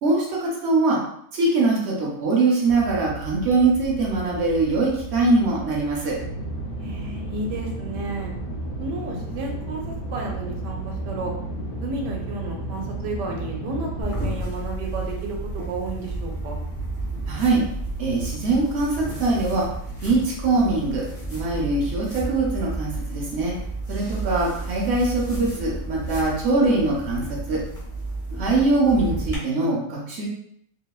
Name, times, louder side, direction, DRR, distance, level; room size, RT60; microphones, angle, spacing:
voice 1, 0.0-1.0 1.3-6.2 17.3-17.6 18.0-19.7 20.0-21.0 21.3-23.5 23.9-27.6 28.4-30.3, right 3 dB, 55° right, -3 dB, 0.7 m, -22 dB
sound 1, 2.7-20.2, right 2 dB, 60° left, 0.8 m, -34 dB
voice 2, 6.8-8.3 8.8-9.8 10.1-11.3 11.8-16.6, right 2 dB, 85° right, 0 dB, 1.3 m, -32 dB
sound 2, 14.0-29.4, right 2 dB, 15° left, 0.6 m, -32 dB
3.0 x 2.1 x 2.3 m, 0.70 s
omnidirectional pair, 1.8 m